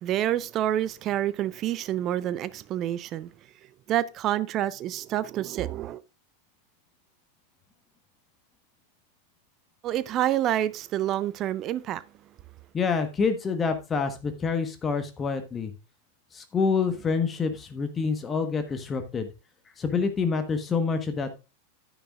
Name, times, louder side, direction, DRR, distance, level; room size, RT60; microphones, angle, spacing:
voice 1, 0.0-3.3 3.9-6.0 9.8-12.0, right 12 dB, 35° right, 0.5 m, -28 dB
voice 2, 12.7-15.7 16.3-19.3 19.8-21.3, left 5 dB, 20° left, 1.2 m, -27 dB
10.5 x 10.0 x 2.4 m
figure-of-eight pair, 90°, 0 cm